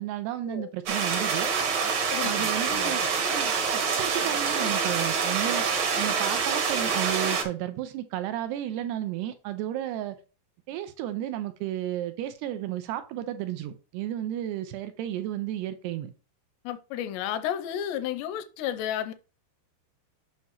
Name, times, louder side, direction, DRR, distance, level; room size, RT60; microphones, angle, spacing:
voice 1, 0.0-1.5 2.2-3.0 3.3-5.6 6.0-10.2 10.7-16.1, right 12 dB, 80° right, 2.5 m, -33 dB
sound 1, 0.9-7.4, right 5 dB, 60° right, 1.8 m, -26 dB
voice 2, 1.8-3.1 16.6-19.1, left 10 dB, 80° left, 2.7 m, -33 dB
8.7 x 5.7 x 3.0 m
omnidirectional pair, 5.1 m